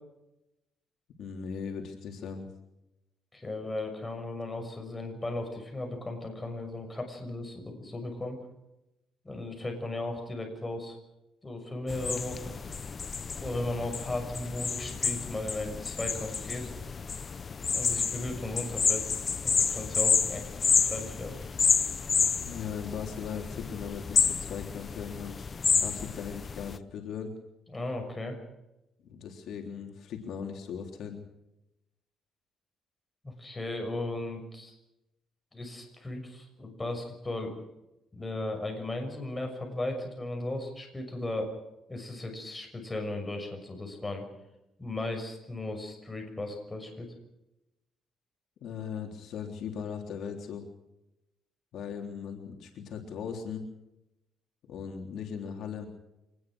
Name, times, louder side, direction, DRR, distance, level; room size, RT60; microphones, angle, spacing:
voice 1, 1.2-2.5 22.4-25.4 25.8-27.3 29.0-31.2 48.6-50.6 51.7-53.6 54.7-55.9, left 7 dB, 65° left, 3 dB, 3.6 m, -38 dB
voice 2, 3.3-8.4 9.2-11.0 11.4-12.5 13.4-16.6 17.7-19.1 19.4-21.4 27.7-28.4 33.2-34.8 35.5-37.5 38.1-41.5 41.9-44.2 44.8-47.1, left 2 dB, 15° left, 4 dB, 6.4 m, -36 dB
sound 1, 11.9-26.8, left 5 dB, 30° left, 0.8 m, -30 dB
25.0 x 20.0 x 6.4 m, 0.91 s
cardioid pair, 140°, 0 cm